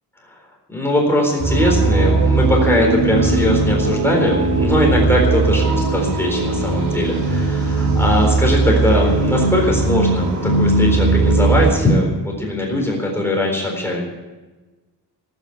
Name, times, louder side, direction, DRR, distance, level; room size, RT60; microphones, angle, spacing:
voice 1, 0.7-14.0, left 1 dB, 5° left, -1 dB, 4.0 m, -20 dB
sound 1, 1.4-11.7, right 3 dB, 55° right, 5.3 m, -18 dB
18.0 x 9.8 x 7.1 m, 1.2 s
cardioid pair, 160°, 41 cm